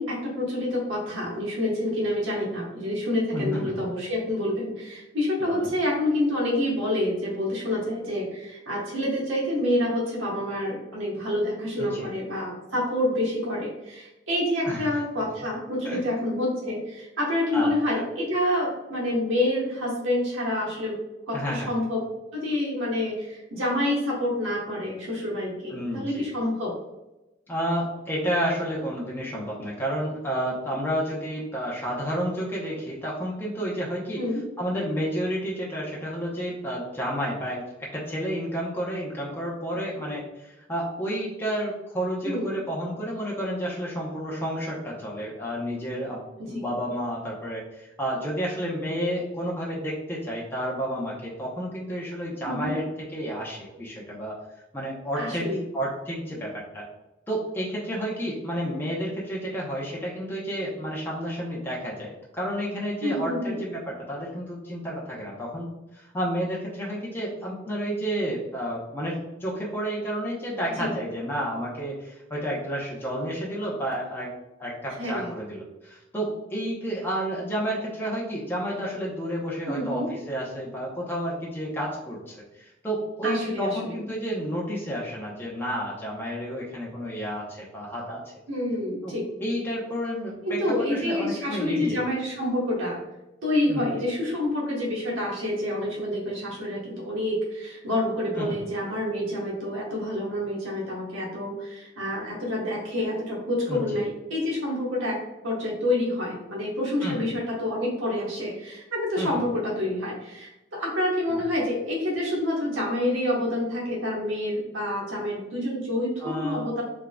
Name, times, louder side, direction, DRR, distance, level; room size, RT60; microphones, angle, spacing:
voice 1, 0.0-21.0 21.3-22.0 22.3-26.8 34.2-34.4 42.2-42.6 46.4-46.6 52.4-52.7 55.2-55.7 63.0-63.6 70.8-70.9 75.0-75.3 79.7-80.1 83.2-84.0 88.5-89.2 90.4-93.0 93.4-105.1 105.4-116.8, left 1 dB, 85° right, -4 dB, 1.1 m, -28 dB
voice 2, 3.3-3.7 5.5-5.7 11.8-12.1 14.6-14.9 15.8-16.0 17.5-18.0 21.3-21.7 25.7-26.3 27.5-34.2 34.6-52.8 53.1-54.4 54.7-56.9 57.3-88.2 89.0-89.1 89.4-90.6 90.9-92.0 93.7-93.8 98.4-98.6 103.7-104.0 107.0-107.2 109.2-109.4 111.3-111.4 116.2-116.7, equal, 10° left, -5 dB, 0.7 m, -31 dB
3.6 x 3.6 x 2.2 m, 1.0 s
head